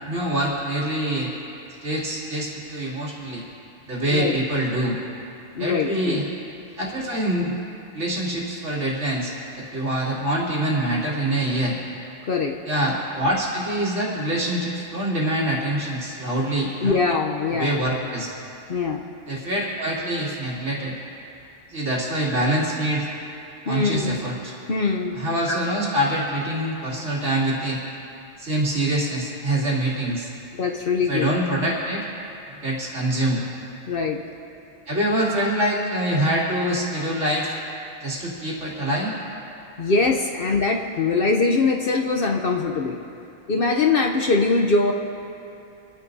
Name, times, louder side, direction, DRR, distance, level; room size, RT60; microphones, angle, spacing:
voice 1, 0.1-1.3 1.8-3.4 3.9-5.0 5.6-6.2 6.8-7.5 7.9-11.7 12.7-17.0 17.5-18.3 19.3-20.9 21.7-23.1 23.6-24.5 25.1-27.8 28.4-30.3 31.1-32.1 32.6-33.4 34.9-37.6 38.0-39.1, right 1 dB, 80° right, -7 dB, 3.2 m, -25 dB
voice 2, 5.5-6.2 12.3-12.5 16.8-17.7 18.7-19.0 23.7-24.2 24.7-25.2 25.5-25.6 30.5-31.3 33.9-34.2 39.8-43.0 43.5-44.9, left 4 dB, 55° left, 1 dB, 0.9 m, -22 dB
28.0 x 10.0 x 2.7 m, 2.8 s
omnidirectional pair, 1.2 m